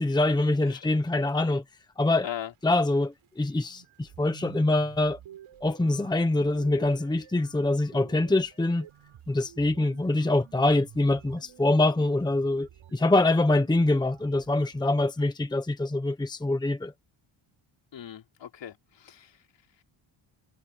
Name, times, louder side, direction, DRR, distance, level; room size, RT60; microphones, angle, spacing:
voice 1, 0.0-1.6 2.0-2.3 2.6-5.2 5.6-8.9 9.3-16.9, left 2 dB, 10° left, 1.1 m, -24 dB
sound 1, 3.2-3.3 3.6-14.8, right 10 dB, 70° right, 6.8 m, -51 dB
voice 2, 17.9-19.4, left 10 dB, 60° left, 4.1 m, -39 dB
wide cardioid pair, 160°, 50 cm